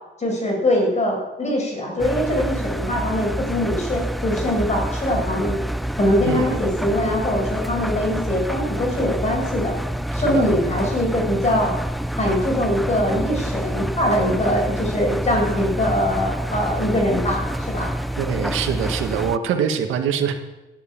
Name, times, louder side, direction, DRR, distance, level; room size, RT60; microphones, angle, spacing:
voice 1, 0.2-5.6 5.9-9.8 10.1-11.7 12.2-17.9, left 1 dB, 35° left, 0 dB, 7.7 m, -22 dB
Engine, 2.0-19.4, right 1 dB, ahead, 0.7 m, -27 dB
voice 2, 18.2-20.4, right 8 dB, 90° right, 6 dB, 1.8 m, -23 dB
17.0 x 9.5 x 7.5 m, 1.0 s
cardioid pair, 90°, 20 cm